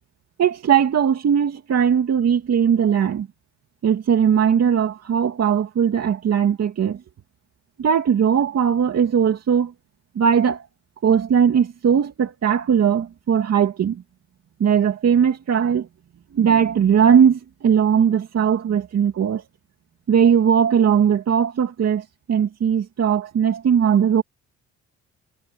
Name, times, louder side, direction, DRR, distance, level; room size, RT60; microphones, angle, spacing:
voice 1, 0.4-3.3 3.8-7.0 7.8-9.7 10.2-10.6 11.0-14.0 14.6-15.9 16.3-19.4 20.1-24.2, right 8 dB, 55° right, 2.5 m, -19 dB
cardioid pair, 90°, 30 cm